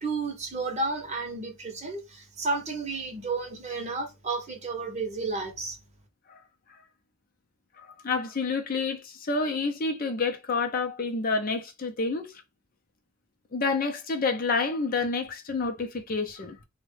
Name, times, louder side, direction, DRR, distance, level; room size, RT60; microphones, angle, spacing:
voice 1, 0.0-5.8, right 3 dB, 30° right, 0.7 m, -32 dB
voice 2, 7.8-12.3 13.5-16.6, left 4 dB, 40° left, 0.5 m, -29 dB
3.4 x 2.1 x 3.2 m
head